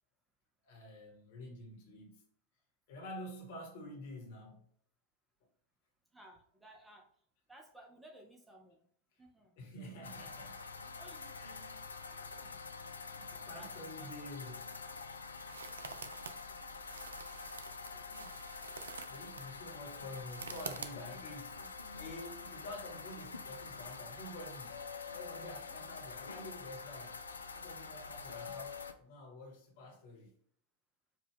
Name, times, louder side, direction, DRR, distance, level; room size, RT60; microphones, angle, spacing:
voice 1, 0.6-2.2 2.9-4.6 9.6-10.6 11.4-11.8 12.1-12.6 13.1-14.6 17.9-18.1 18.9-21.6 21.9-24.8 25.1-27.2 27.5-30.3, left 1 dB, 55° left, 1.2 m, -49 dB
voice 2, 6.1-7.1 7.5-8.9 9.2-9.6 10.5-11.8 13.5-13.7 14.0-14.5 25.7-25.9, right 1 dB, 10° right, 0.6 m, -58 dB
sound 1, 10.0-28.9, left 4 dB, 75° left, 0.3 m, -46 dB
sound 2, 14.2-21.4, right 5 dB, 70° right, 0.3 m, -49 dB
4.7 x 2.3 x 3.4 m
figure-of-eight pair, 90°, 0 cm